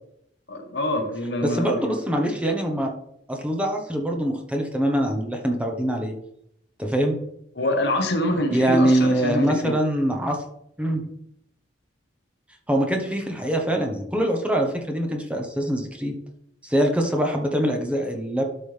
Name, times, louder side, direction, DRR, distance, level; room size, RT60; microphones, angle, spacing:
voice 1, 0.5-1.9 7.6-9.8, left 1 dB, 65° left, 4 dB, 1.3 m, -25 dB
voice 2, 1.4-2.9 3.3-6.1 6.8-7.2 8.5-10.4 10.8-11.1 12.7-16.2 16.6-18.4, right 1 dB, 5° right, 2 dB, 1.1 m, -23 dB
12.0 x 5.4 x 3.4 m, 0.75 s
head